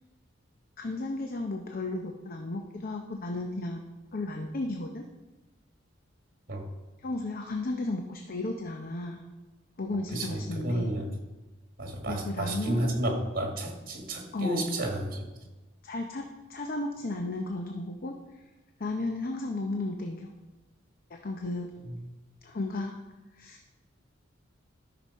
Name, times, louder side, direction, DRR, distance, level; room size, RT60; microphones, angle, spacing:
voice 1, 0.8-3.8 4.1-5.0 7.0-9.2 9.8-10.9 12.1-12.8 14.3-14.7 15.8-16.2 16.5-18.1 18.8-20.3 21.1-21.7 22.4-22.9 23.4-23.6, left 2 dB, 50° left, 3 dB, 0.7 m, -34 dB
voice 2, 10.1-11.1 11.8-15.3 21.9-22.0, right 1 dB, 50° right, 1 dB, 1.7 m, -31 dB
13.5 x 6.0 x 4.1 m, 1.1 s
head